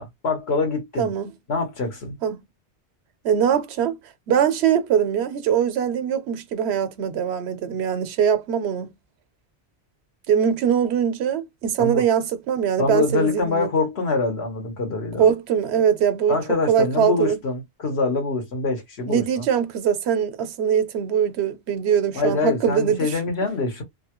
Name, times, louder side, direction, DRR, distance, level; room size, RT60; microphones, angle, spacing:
voice 1, 0.0-1.1 1.5-2.2 11.8-12.0 12.8-15.2 16.3-19.4 22.1-23.8, left 3 dB, 80° left, 1.4 m, -25 dB
voice 2, 1.0-1.3 2.2-2.4 3.2-4.0 4.3-8.9 10.3-13.7 15.2-16.4 16.7-17.4 19.1-23.2, right 8 dB, 90° right, 0.9 m, -22 dB
2.9 x 2.2 x 2.9 m
omnidirectional pair, 1.1 m